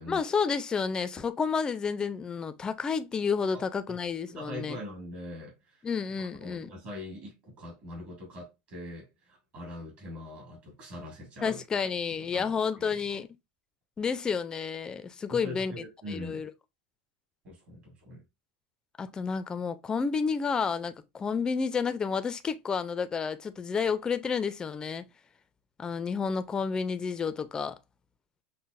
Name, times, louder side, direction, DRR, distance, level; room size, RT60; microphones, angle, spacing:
voice 1, 0.1-4.8 5.8-6.7 11.4-13.3 14.0-15.7 16.1-16.5 19.0-25.0 25.8-27.8, left 5 dB, 20° left, 0.4 m, -30 dB
voice 2, 4.3-5.8 6.2-11.6 12.2-13.2 15.3-16.4 17.4-18.2, left 1 dB, 45° right, 2.2 m, -43 dB
5.6 x 2.1 x 2.4 m
supercardioid pair, 130°, 4 cm